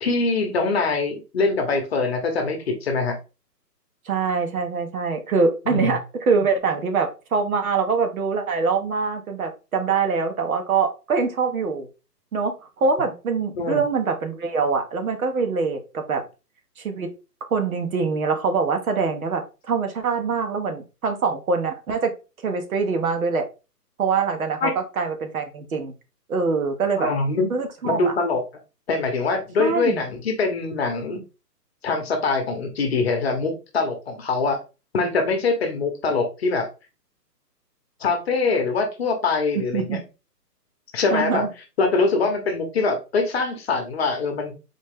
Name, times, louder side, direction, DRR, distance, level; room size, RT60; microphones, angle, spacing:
voice 1, 0.0-3.2 5.7-5.9 13.5-13.8 24.6-24.7 27.0-27.5 27.8-28.4 28.9-31.2 31.8-34.6 34.9-36.7 38.0-40.0 40.9-41.5 41.8-44.5, left 3 dB, 40° left, 5 dB, 1.0 m, -23 dB
voice 2, 4.1-11.9 12.3-12.5 12.8-16.2 16.8-17.1 17.5-22.1 22.4-23.5 24.0-25.9 26.3-27.1 27.5-28.1 29.6-30.0 39.7-40.0 41.1-41.5, right 5 dB, 60° right, 6 dB, 1.1 m, -24 dB
4.2 x 3.1 x 3.4 m, 0.30 s
hypercardioid pair, 160°, 49 cm